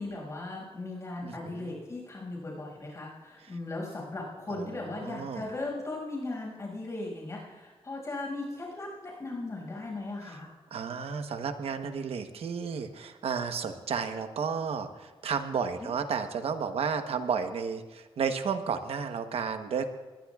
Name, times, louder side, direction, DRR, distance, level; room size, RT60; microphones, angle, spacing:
voice 1, 0.0-10.5, left 2 dB, 30° left, -2 dB, 5.9 m, -37 dB
voice 2, 1.2-1.7 3.4-3.5 4.5-5.5 10.3-10.4 10.7-19.9, right 6 dB, 75° right, 7 dB, 1.0 m, -32 dB
22.5 x 20.5 x 2.4 m, 1.2 s
wide cardioid pair, 175°, 10 cm